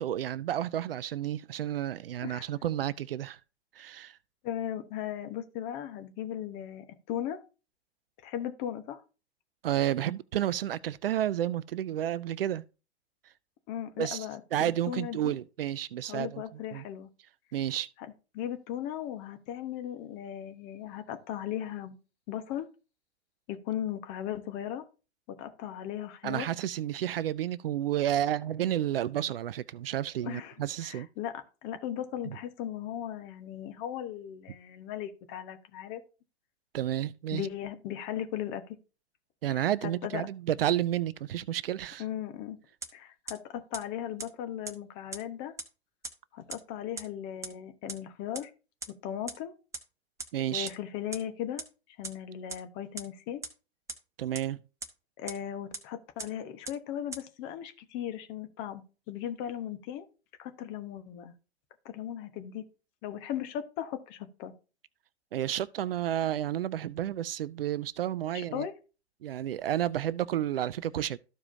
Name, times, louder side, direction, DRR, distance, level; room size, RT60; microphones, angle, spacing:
voice 1, 0.0-3.4 3.8-4.2 9.6-12.6 14.0-14.3 14.5-16.4 16.7-16.8 17.5-17.9 26.2-31.1 36.7-37.5 39.4-42.0 50.3-50.7 54.2-54.6 65.3-68.7 69.2-71.2, right 11 dB, 60° right, 0.5 m, -31 dB
voice 2, 4.4-7.4 8.2-9.0 13.7-15.4 16.1-17.1 18.3-22.0 22.3-22.7 23.5-24.9 25.3-26.5 30.2-30.5 30.8-36.0 37.3-38.8 39.5-39.6 40.0-40.3 42.0-42.6 42.9-45.5 46.3-48.5 49.0-49.6 50.5-51.6 52.0-53.4 55.2-60.1 60.4-61.3 61.8-62.6 63.0-64.5 68.3-68.7, left 10 dB, 35° left, 1.1 m, -37 dB
sound 1, 42.8-42.9 43.3-43.4 43.7-43.8 44.2-44.3 44.6-44.7 45.1-45.2 45.6-45.7 46.0-46.1 46.5-46.6 47.0-47.1 47.4-47.5 47.9-48.0 48.3-48.4 48.8-48.9 49.3-49.4 49.7-49.8 50.2-50.3 50.6-50.7 51.1-51.2 51.6-51.7 52.0-52.1 52.5-52.6 53.0-53.1 53.4-53.5 53.9-54.0 54.3-54.4 54.8-54.9 55.3-55.4 55.7-55.8 56.2-56.3 56.6-56.7 57.1-57.2, right 3 dB, 10° right, 1.0 m, -37 dB
13.5 x 4.8 x 2.7 m
figure-of-eight pair, 100°, 33 cm